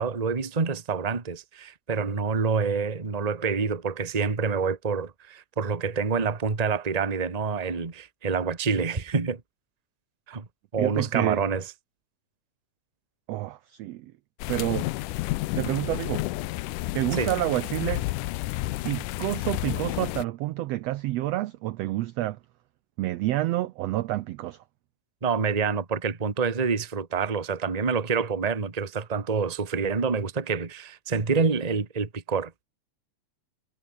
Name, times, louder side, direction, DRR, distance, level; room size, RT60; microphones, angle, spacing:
voice 1, 0.0-9.4 10.3-10.4 10.7-11.6 17.1-17.3 25.2-32.6, right 5 dB, 20° right, 1.0 m, -27 dB
voice 2, 10.8-11.4 13.3-14.1 14.5-14.9 15.6-16.2 16.9-18.1 18.8-22.4 23.0-24.6, right 16 dB, 80° right, 1.5 m, -28 dB
sound 1, 14.4-20.2, left 19 dB, 85° left, 2.2 m, -31 dB
omnidirectional pair, 3.6 m